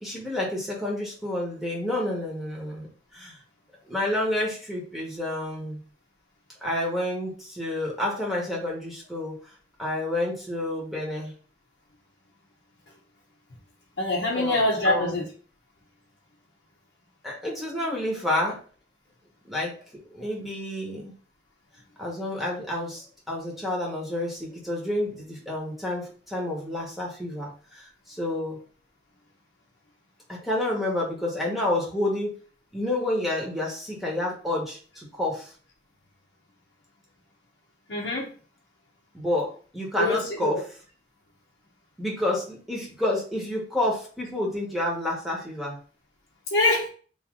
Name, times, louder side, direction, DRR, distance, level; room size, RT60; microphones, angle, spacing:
voice 1, 0.0-2.9 3.1-3.4 3.9-5.8 6.6-9.5 9.8-11.3 14.3-15.2 17.2-18.6 19.5-19.7 20.1-21.1 22.0-28.6 30.3-32.3 32.7-35.5 39.1-40.6 42.0-45.8, left 1 dB, ahead, -3 dB, 1.2 m, -29 dB
voice 2, 14.0-15.3 37.9-38.3 40.0-40.6 46.5-46.9, left 2 dB, 75° left, -4 dB, 0.8 m, -24 dB
3.1 x 2.8 x 3.7 m, 0.40 s
head